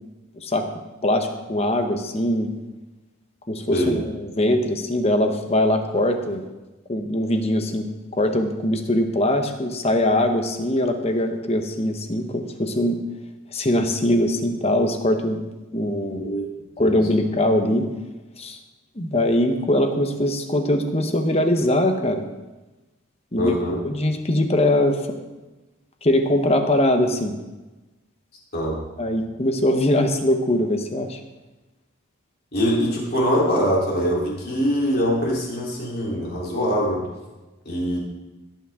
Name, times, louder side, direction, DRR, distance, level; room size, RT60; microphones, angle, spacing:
voice 1, 0.4-0.7 1.0-2.5 3.5-6.4 6.9-13.0 13.5-15.4 15.7-16.2 16.8-17.9 18.4-18.6 19.0-22.2 23.3-23.6 23.8-25.2 26.0-27.4 29.0-31.2, left 1 dB, 30° left, 6 dB, 1.0 m, -22 dB
voice 2, 3.7-4.0 16.1-16.4 16.8-17.0 23.4-23.8 28.5-28.8 32.5-37.0 37.7-38.0, equal, 45° left, -4 dB, 3.6 m, -23 dB
17.5 x 8.7 x 3.7 m, 1.1 s
head